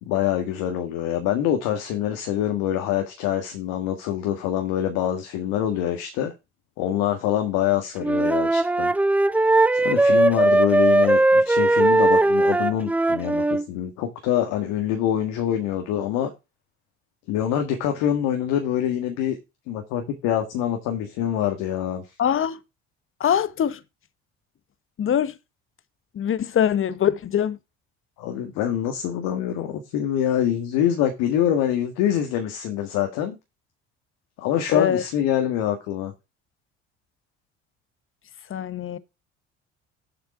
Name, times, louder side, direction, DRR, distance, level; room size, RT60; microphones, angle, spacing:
voice 1, 0.0-6.3 6.8-8.9 9.4-16.3 17.3-19.4 19.7-22.0 28.2-33.4 34.4-36.1, left 10 dB, 70° left, 1.7 m, -25 dB
Wind instrument woodwind instrument, 8.0-13.7, right 2 dB, 5° right, 0.4 m, -19 dB
voice 2, 22.2-22.6 23.2-23.8 25.0-25.3 26.1-27.6 34.7-35.0 38.5-39.0, left 9 dB, 40° left, 1.0 m, -23 dB
7.6 x 6.0 x 4.8 m
hypercardioid pair, 65°, 32 cm